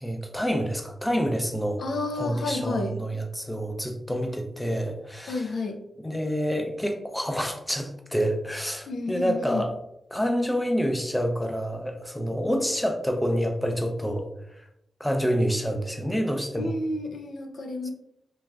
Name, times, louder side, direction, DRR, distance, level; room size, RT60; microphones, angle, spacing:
voice 1, 0.0-1.8 2.2-5.5 6.0-9.7 10.1-14.3 15.0-16.7, equal, 5° left, 4 dB, 0.4 m, -27 dB
voice 2, 1.8-2.9 5.3-5.8 8.9-9.7 16.6-17.9, left 2 dB, 70° left, 4 dB, 0.3 m, -30 dB
3.1 x 2.4 x 2.3 m, 0.81 s
cardioid pair, 75°, 0 cm